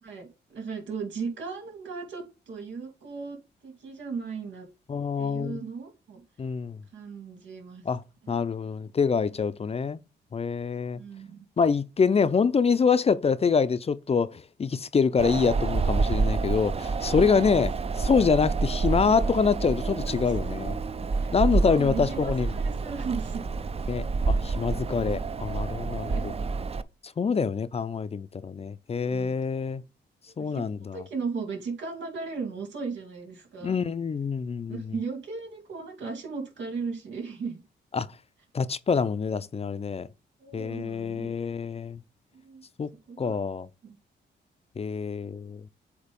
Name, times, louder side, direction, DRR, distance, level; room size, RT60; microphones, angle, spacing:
voice 1, 0.0-3.4 3.6-4.7 5.2-6.2 6.9-7.8 8.2-8.3 10.9-11.4 16.1-16.2 17.2-17.6 21.2-21.3 21.6-23.5 26.0-26.5 29.0-29.4 30.4-30.6 30.9-33.7 34.7-37.6 40.4-41.3 42.4-42.6 43.1-43.4, right 5 dB, 90° right, 2.5 m, -36 dB
voice 2, 4.9-5.6 6.4-6.8 7.9-10.0 10.3-11.0 11.6-20.8 21.3-22.6 23.9-26.3 27.2-29.8 30.4-31.0 33.6-35.0 37.9-38.1 38.5-40.1 40.5-42.0 42.8-42.9 43.2-43.7 44.8-45.7, left 5 dB, 35° left, 0.5 m, -26 dB
Wind, 15.2-26.8, right 4 dB, 35° right, 0.6 m, -28 dB
8.2 x 2.9 x 5.3 m
cardioid pair, 85°, 19 cm